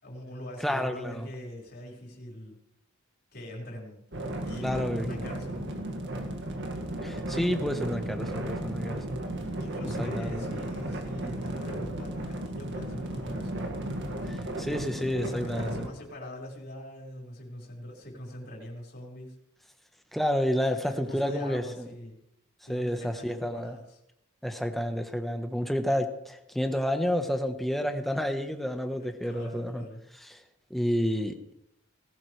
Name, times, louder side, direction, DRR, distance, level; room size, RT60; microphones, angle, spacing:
voice 1, 0.0-2.6 3.3-4.1 4.4-5.7 9.6-13.7 15.2-19.4 20.8-22.2 22.6-24.0 29.0-30.0, left 1 dB, 50° left, -1 dB, 5.3 m, -42 dB
voice 2, 0.6-1.3 4.6-5.3 7.0-9.2 9.8-10.4 14.2-15.9 20.1-21.9 22.7-23.7 24.4-29.8 30.2-30.4 30.7-31.5, equal, ahead, 5 dB, 1.2 m, -30 dB
sound 1, 4.1-15.9, right 1 dB, 55° right, 2.1 m, -35 dB
19.5 x 16.0 x 3.4 m, 0.80 s
head